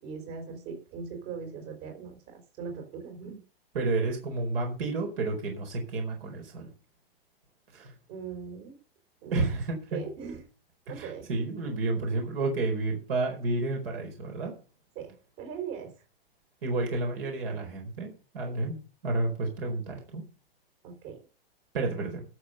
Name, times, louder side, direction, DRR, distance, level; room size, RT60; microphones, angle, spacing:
voice 1, 0.0-3.4 8.1-8.8 9.2-9.5 9.9-10.4 10.9-11.3 14.9-15.9 20.8-21.2, right 6 dB, 50° right, 4 dB, 5.0 m, -40 dB
voice 2, 3.7-6.7 7.7-7.9 9.3-10.0 10.9-14.5 16.6-18.8 19.0-20.2 21.7-22.2, right 3 dB, 70° right, 2 dB, 4.6 m, -30 dB
12.5 x 7.0 x 6.8 m, 0.37 s
hypercardioid pair, 130°, 30 cm